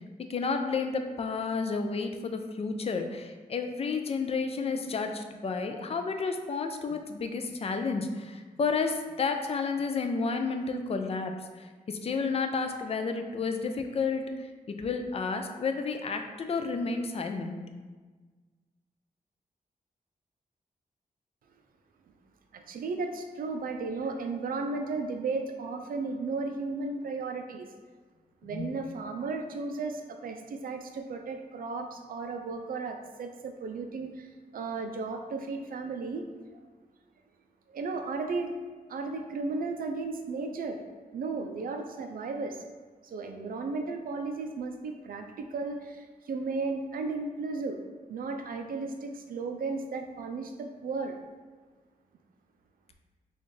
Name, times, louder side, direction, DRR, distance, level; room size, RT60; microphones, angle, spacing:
voice 1, 0.3-17.6 28.5-28.7, left 4 dB, 45° left, 6 dB, 0.4 m, -31 dB
voice 2, 22.5-27.7 28.4-36.6 37.7-38.5 38.9-40.8 41.1-42.6 43.0-47.8 48.1-51.2, right 3 dB, 70° right, 5 dB, 0.4 m, -35 dB
4.1 x 2.4 x 3.1 m, 1.4 s
wide cardioid pair, 95°, 15 cm